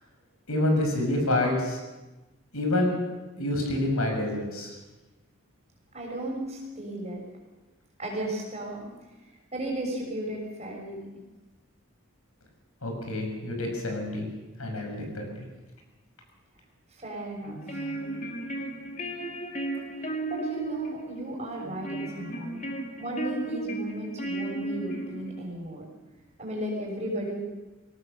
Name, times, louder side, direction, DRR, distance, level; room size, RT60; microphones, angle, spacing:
voice 1, 0.5-1.8 2.5-3.0 3.4-4.7 12.8-14.3 14.6-15.4, left 1 dB, 90° left, 3 dB, 6.5 m, -27 dB
voice 2, 5.9-7.2 8.0-8.9 9.2-11.0 16.9-18.0 20.0-22.7 23.0-25.8 26.4-27.4, right 1 dB, 30° right, 0 dB, 6.3 m, -35 dB
sound 1, 17.4-25.5, right 2 dB, 35° left, 2.5 m, -35 dB
22.0 x 18.0 x 6.8 m, 1.1 s
head